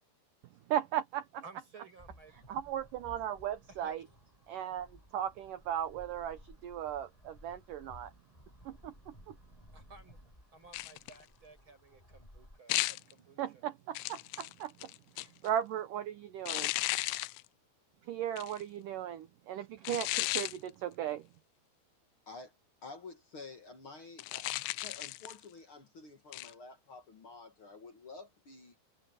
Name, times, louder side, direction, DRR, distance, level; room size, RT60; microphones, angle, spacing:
voice 1, 0.7-1.4 2.5-4.0 4.5-4.9 5.1-8.1 8.6-9.3 13.4-14.9 15.2-16.7 18.1-21.3, right 11 dB, 80° right, 1.8 m, -37 dB
voice 2, 1.4-2.6 3.7-4.0 9.7-10.2 10.5-13.6, right 4 dB, 25° right, 7.1 m, -56 dB
sound 1, 2.0-12.6, left 1 dB, 10° left, 6.2 m, -58 dB
sound 2, 10.7-11.2 12.7-13.1 13.9-15.5 16.5-17.4 18.4-18.6 19.8-20.6 24.2-25.4 26.3-26.5, left 21 dB, 85° left, 2.9 m, -35 dB
voice 3, 22.8-28.7, left 3 dB, 45° left, 1.7 m, -50 dB
omnidirectional pair, 5.1 m